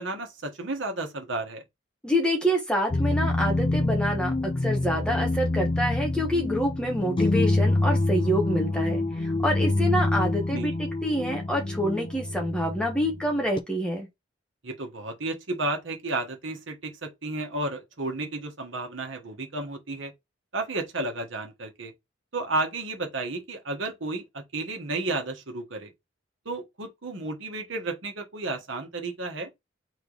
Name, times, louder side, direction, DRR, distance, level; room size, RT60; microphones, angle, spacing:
voice 1, 0.0-1.6 10.5-10.7 14.6-20.1 20.5-21.9 22.3-25.9 26.4-29.5, right 2 dB, 80° right, 1.2 m, -32 dB
voice 2, 2.0-14.1, equal, 5° left, 1.1 m, -27 dB
sound 1, 2.9-13.6, left 2 dB, 25° left, 0.3 m, -26 dB
3.7 x 3.4 x 3.9 m
head